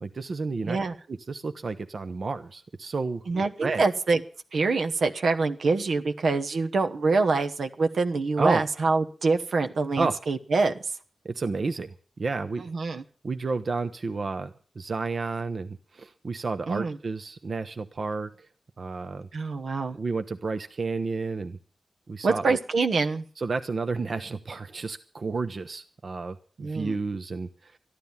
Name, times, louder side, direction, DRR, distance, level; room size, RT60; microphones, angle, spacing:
voice 1, 0.0-0.8 1.1-3.8 8.4-8.6 10.0-10.2 11.2-12.6 13.2-18.5 18.8-19.3 19.9-21.6 22.1-22.6 23.4-27.8, right 4 dB, 60° right, 9 dB, 0.8 m, -31 dB
voice 2, 0.6-0.9 3.3-4.2 4.5-10.7 12.6-13.0 16.7-17.0 19.3-20.0 22.2-23.2 26.6-27.0, right 3 dB, 80° right, 6 dB, 1.1 m, -25 dB
13.5 x 11.5 x 7.2 m, 0.43 s
wide cardioid pair, 80°, 0 cm